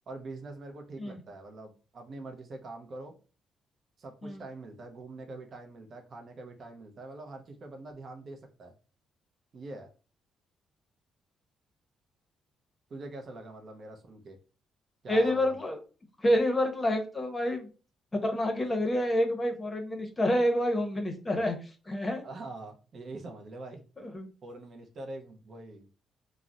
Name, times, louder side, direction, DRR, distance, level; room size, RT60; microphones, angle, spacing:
voice 1, 0.1-3.1 4.0-8.7 9.5-9.9 12.9-14.4 15.0-15.6 22.2-24.1 24.4-25.9, right 2 dB, 50° right, 4 dB, 0.6 m, -44 dB
voice 2, 15.1-15.8 16.2-17.7 18.1-22.2 24.0-24.3, left 1 dB, 20° left, 4 dB, 0.7 m, -28 dB
2.4 x 2.0 x 3.7 m, 0.35 s
cardioid pair, 90°, 0 cm